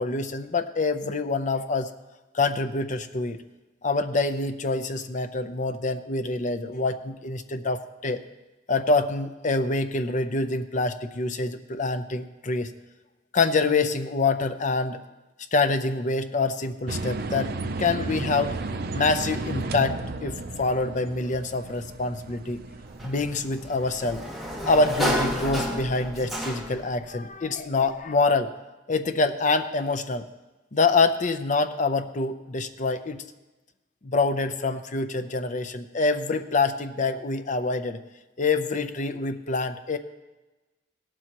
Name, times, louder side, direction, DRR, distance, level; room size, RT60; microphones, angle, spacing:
voice 1, 0.0-1.9 2.3-3.4 3.8-8.2 8.7-12.7 13.3-15.0 15.5-17.5 17.8-18.6 18.9-22.6 23.0-24.2 24.6-28.5 28.9-30.3 30.7-33.2 34.0-38.0 38.4-40.0, left 3 dB, 40° left, 9 dB, 0.7 m, -26 dB
sound 1, 16.9-24.9, right 2 dB, 55° right, 0.6 m, -34 dB
Sliding door, 23.0-26.9, equal, ahead, 1.9 m, -30 dB
17.5 x 12.0 x 3.0 m, 1.1 s
head